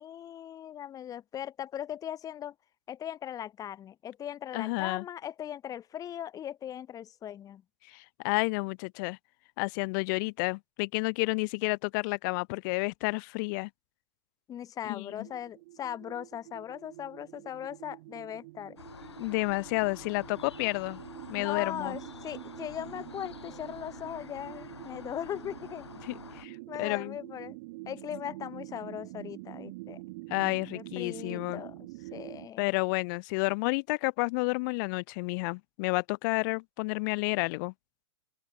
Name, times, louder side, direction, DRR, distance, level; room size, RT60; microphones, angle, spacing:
voice 1, 0.0-2.5 2.9-7.6 14.5-18.8 21.4-25.9 26.7-27.6 27.9-30.0 30.7-31.8 32.1-32.7, left 10 dB, 25° left, 5.7 m, -39 dB
voice 2, 4.5-5.0 7.9-9.2 9.6-13.7 14.8-15.3 19.2-21.0 21.3-22.0 26.0-27.2 30.3-31.6 32.6-37.7, left 29 dB, 45° left, 1.3 m, -30 dB
sound 1, 15.1-32.5, right 23 dB, 50° right, 5.4 m, -46 dB
sound 2, 18.8-26.5, left 7 dB, 85° left, 7.8 m, -48 dB
open air
hypercardioid pair, 120°, 14 cm